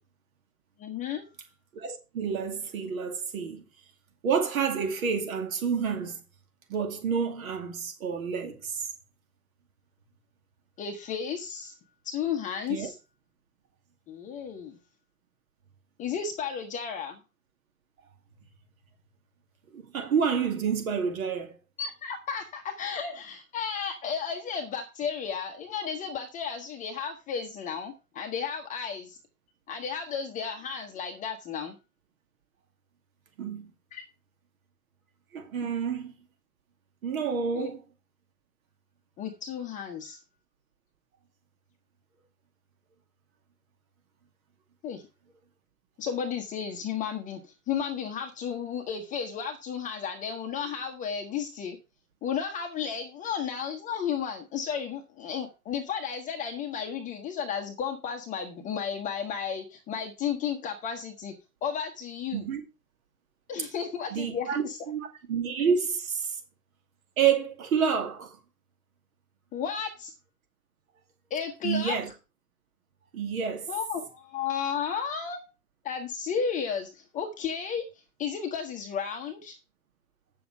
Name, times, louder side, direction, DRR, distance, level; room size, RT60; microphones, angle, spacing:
voice 1, 0.8-1.2 10.8-11.7 12.0-12.9 14.1-14.8 16.0-17.2 21.8-29.2 29.7-31.7 33.9-34.0 37.5-37.7 39.2-40.2 44.8-45.0 46.0-51.8 52.2-61.3 61.6-62.4 63.5-64.8 69.5-70.1 71.3-72.0 73.7-75.4 75.8-77.9 78.2-79.5, left 7 dB, 15° left, 0.9 m, -33 dB
voice 2, 1.7-3.6 4.2-6.2 6.7-8.9 12.7-12.9 19.7-21.5 33.4-33.7 35.3-36.2 37.0-37.8 62.3-62.6 64.1-65.0 65.3-66.4 67.2-68.4 71.6-72.1 73.1-73.7, right 6 dB, 60° right, 2.4 m, -29 dB
8.6 x 7.0 x 4.6 m
hypercardioid pair, 125°, 47 cm